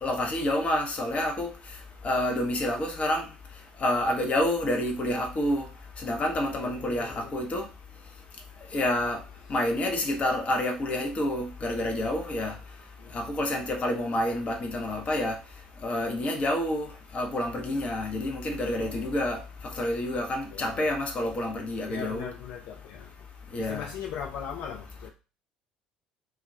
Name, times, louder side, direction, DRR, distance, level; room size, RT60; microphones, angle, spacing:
voice 1, 0.0-1.5 2.0-3.3 3.8-5.7 6.0-7.6 8.7-9.2 9.5-12.5 13.1-15.4 15.8-16.9 17.1-19.4 19.8-22.2 23.5-23.9, left 1 dB, 35° left, 0.8 m, -28 dB
voice 2, 6.6-7.4 8.6-8.8 13.0-13.1 18.8-19.1 20.5-20.8 21.9-23.1 23.6-25.1, left 8 dB, 60° left, 0.4 m, -40 dB
2.2 x 2.2 x 3.3 m
figure-of-eight pair, 55°, 4 cm